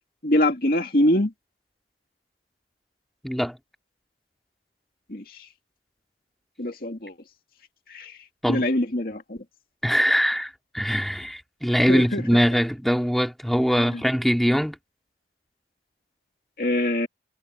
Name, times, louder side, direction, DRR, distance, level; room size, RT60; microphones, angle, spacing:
voice 1, 0.2-1.3 5.1-5.2 6.6-7.1 7.9-8.1 8.5-9.4 11.9-12.2 16.6-17.1, left 1 dB, 55° left, 2.3 m, -23 dB
voice 2, 3.2-3.6 8.4-8.7 9.8-14.8, equal, ahead, 2.2 m, -22 dB
head